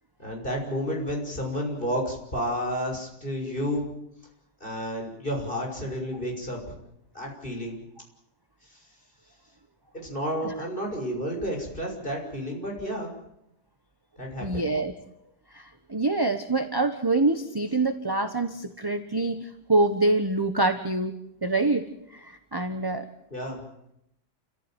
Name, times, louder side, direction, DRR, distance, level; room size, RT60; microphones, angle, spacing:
voice 1, 0.2-3.9 4.6-6.7 7.1-7.8 8.6-8.8 10.0-13.1 14.2-14.7 23.3-23.6, equal, 30° left, 1 dB, 6.7 m, -31 dB
voice 2, 14.4-14.9 15.5-21.1 21.4-23.1, right 2 dB, 15° right, 7 dB, 1.1 m, -25 dB
29.5 x 15.0 x 9.3 m, 0.81 s
omnidirectional pair, 1.8 m